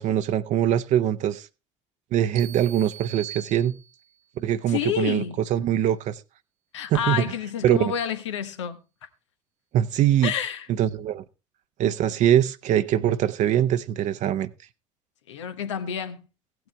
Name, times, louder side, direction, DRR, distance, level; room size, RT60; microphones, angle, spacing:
voice 1, 0.0-1.5 2.1-3.8 4.4-5.2 5.5-6.2 6.9-7.2 7.6-7.9 9.7-10.3 10.8-11.2 11.8-14.5, right 11 dB, 55° right, 0.7 m, -22 dB
sound 1, 2.4-4.2, right 11 dB, 75° right, 1.2 m, -41 dB
voice 2, 4.7-5.4 6.7-8.8 10.2-10.7 15.3-16.3, left 9 dB, 85° left, 1.0 m, -29 dB
15.5 x 9.2 x 3.3 m
hypercardioid pair, 60°, 15 cm